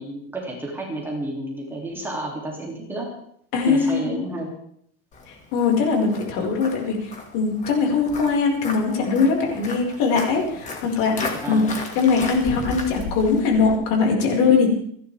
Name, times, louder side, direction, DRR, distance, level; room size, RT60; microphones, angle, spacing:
voice 1, 0.0-3.1 3.6-4.5 11.4-11.7, right 1 dB, 5° right, -2 dB, 3.0 m, -31 dB
voice 2, 3.5-4.2 5.3-14.7, left 4 dB, 65° left, 0 dB, 5.5 m, -21 dB
Walk footsteps, 5.1-13.8, left 3 dB, 25° left, 2.2 m, -35 dB
29.0 x 11.5 x 3.6 m, 0.66 s
cardioid pair, 175°, 30 cm